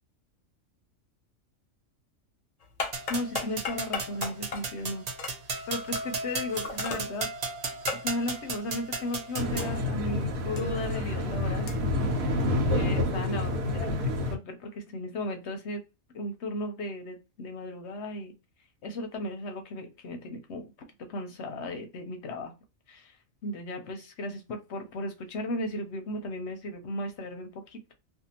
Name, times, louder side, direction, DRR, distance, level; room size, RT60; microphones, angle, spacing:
sound 1, 2.6-10.1 10.4-12.8, left 4 dB, 90° left, 0.3 m, -39 dB
sound 2, 2.9-9.8, right 3 dB, 55° right, 0.4 m, -35 dB
voice 1, 3.1-5.1 5.7-7.3 7.9-11.7 12.2-15.8 16.1-18.3 18.8-20.6 21.1-22.5 22.9-23.2 23.4-27.9, left 1 dB, 65° left, 5 dB, 0.8 m, -35 dB
sound 3, 9.4-14.3, left 1 dB, 90° right, 1.1 m, -28 dB
2.6 x 2.4 x 2.8 m, 0.27 s
omnidirectional pair, 1.4 m